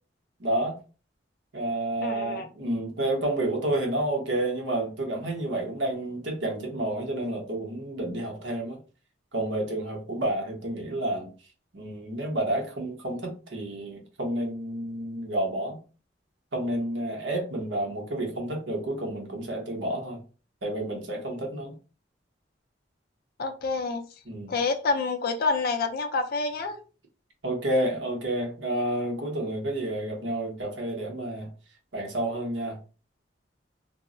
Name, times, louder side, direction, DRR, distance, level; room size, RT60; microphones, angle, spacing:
voice 1, 0.4-0.8 1.5-8.8 9.3-11.3 11.7-15.8 16.5-20.2 20.6-21.7 24.3-24.5 27.4-31.5 31.9-32.8, right 1 dB, 80° right, 0.9 m, -30 dB
voice 2, 2.0-2.5 23.4-24.0 24.5-26.8, left 4 dB, 55° left, 0.4 m, -27 dB
2.3 x 2.0 x 3.6 m
head